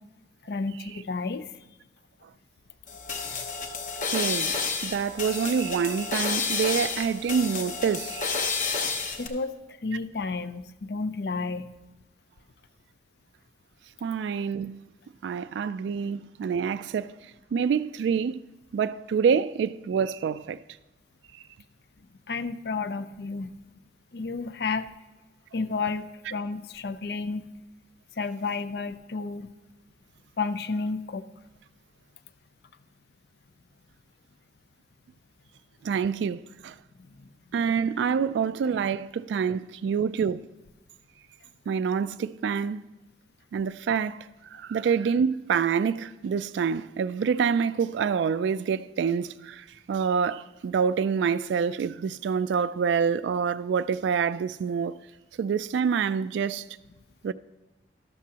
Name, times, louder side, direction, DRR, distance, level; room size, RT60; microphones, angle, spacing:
voice 1, 0.5-1.5 9.2-11.7 22.3-23.5 24.1-24.9 25.5-27.4 28.2-29.5 30.4-31.3 37.1-37.3, left 4 dB, 65° left, 0.5 m, -31 dB
sound 1, 2.9-9.3, left 5 dB, 45° left, 0.9 m, -30 dB
voice 2, 4.1-4.6 4.8-8.7 14.0-14.8 15.2-17.1 17.5-18.4 18.7-20.6 35.8-36.8 37.5-40.4 41.7-42.9 43.5-55.0 55.4-56.6 57.2-57.3, right 6 dB, 80° right, 0.3 m, -27 dB
13.0 x 12.0 x 2.9 m
head